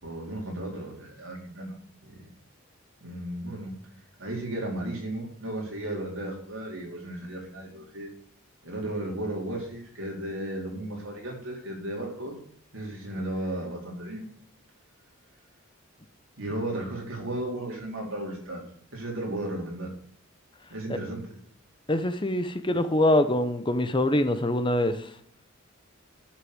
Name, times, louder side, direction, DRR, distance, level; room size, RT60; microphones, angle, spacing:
voice 1, 0.0-2.2 3.0-3.7 4.2-8.1 8.6-12.4 12.7-14.3 16.4-18.6 18.9-19.9 20.7-21.2, right 1 dB, 70° right, 4.2 m, -34 dB
voice 2, 21.9-25.1, left 1 dB, 25° left, 0.8 m, -24 dB
11.0 x 6.5 x 8.0 m
head